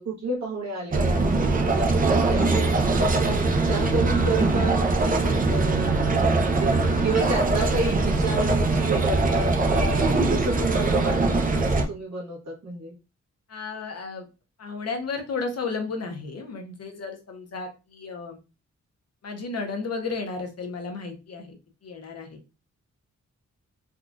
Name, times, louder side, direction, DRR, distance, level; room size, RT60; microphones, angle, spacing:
voice 1, 0.0-12.9, right 2 dB, 60° right, -2 dB, 1.3 m, -31 dB
sound 1, 0.9-11.8, right 3 dB, 30° right, 0.4 m, -22 dB
voice 2, 13.5-14.2 14.6-18.4 19.2-21.5 21.8-22.4, left 4 dB, 55° left, 4 dB, 0.7 m, -33 dB
3.6 x 2.3 x 2.5 m, 0.30 s
wide cardioid pair, 130°, 30 cm